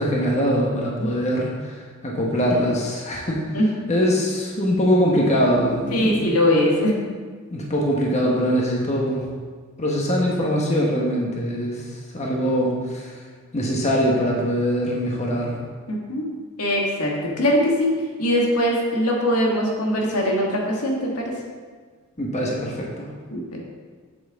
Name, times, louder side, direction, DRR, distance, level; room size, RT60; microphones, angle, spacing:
voice 1, 0.0-3.4 3.9-6.2 7.5-9.2 9.8-13.1 13.5-15.5 22.2-23.1, equal, 30° left, -2 dB, 1.1 m, -22 dB
voice 2, 5.9-6.9 15.9-16.3 16.6-21.3 23.3-23.4, equal, 90° left, -1 dB, 1.6 m, -21 dB
7.7 x 7.5 x 3.6 m, 1.5 s
head